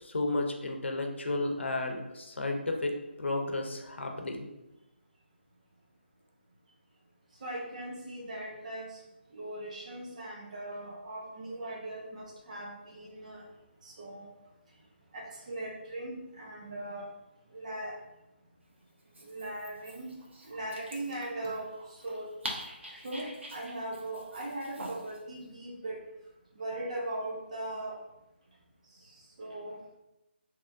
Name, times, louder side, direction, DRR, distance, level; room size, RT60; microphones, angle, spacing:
voice 1, 0.0-4.5, left 2 dB, 80° left, 3 dB, 0.7 m, -33 dB
voice 2, 7.4-9.0 9.3-13.4 13.8-14.3 15.1-17.1 17.5-18.0 19.2-20.1 20.4-22.3 23.0-26.0 26.5-28.0 29.0-29.8, right 1 dB, 40° right, -2 dB, 0.8 m, -39 dB
Dog, 19.0-25.2, right 1 dB, 90° right, 1.0 m, -45 dB
3.5 x 2.9 x 2.6 m, 0.94 s
figure-of-eight pair, 165°, 6 cm